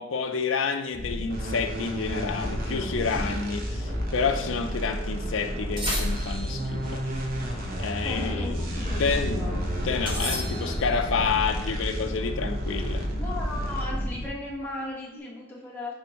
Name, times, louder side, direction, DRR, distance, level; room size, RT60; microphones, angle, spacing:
voice 1, 0.0-7.0 7.8-8.7 9.0-9.4 9.8-13.1, left 5 dB, 65° left, 7 dB, 0.5 m, -29 dB
sound 1, 0.9-14.3, left 1 dB, 40° left, 1.3 m, -33 dB
sound 2, 1.3-14.3, right 1 dB, 45° right, 1.0 m, -34 dB
voice 2, 3.4-3.8 8.0-9.5 13.2-15.9, left 2 dB, 10° left, -5 dB, 1.3 m, -37 dB
sound 3, 5.8-6.7 10.1-11.0, equal, 25° right, 1.4 m, -33 dB
9.5 x 3.5 x 3.0 m, 1.1 s
head